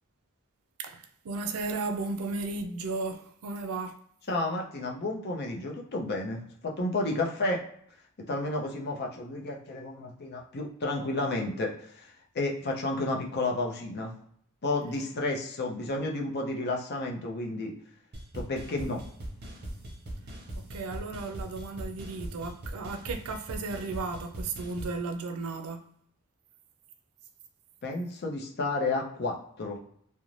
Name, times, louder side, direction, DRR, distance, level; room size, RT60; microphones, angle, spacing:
voice 1, 0.8-4.0 20.6-25.8, right 3 dB, 75° right, 0.4 m, -35 dB
voice 2, 4.3-7.6 8.2-14.1 14.6-17.7 18.3-19.0 27.8-29.8, left 2 dB, 50° left, 0.6 m, -31 dB
sound 1, 18.1-25.0, right 1 dB, 50° right, 0.7 m, -40 dB
2.5 x 2.1 x 3.1 m
head